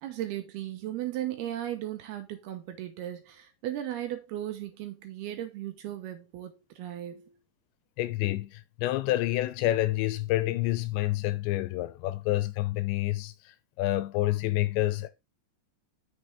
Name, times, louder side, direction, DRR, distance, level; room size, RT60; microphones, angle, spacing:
voice 1, 0.0-7.3, right 12 dB, 75° right, 2.6 m, -36 dB
voice 2, 8.0-13.3 13.8-15.1, left 16 dB, 80° left, 2.9 m, -28 dB
7.6 x 6.7 x 3.4 m
omnidirectional pair, 5.2 m